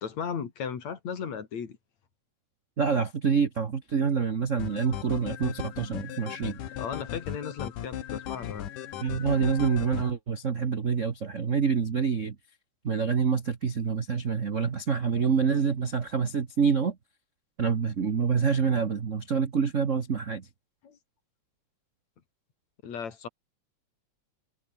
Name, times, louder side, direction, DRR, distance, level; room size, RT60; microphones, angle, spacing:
voice 1, 0.0-1.8 6.8-8.7 20.8-21.0 22.8-23.3, left 7 dB, 60° left, 3.9 m, -36 dB
voice 2, 2.8-6.6 9.0-12.3 12.8-17.0 17.6-20.5, right 6 dB, 60° right, 0.7 m, -26 dB
sound 1, 4.6-10.1, left 11 dB, 90° left, 3.1 m, -37 dB
omnidirectional pair, 3.5 m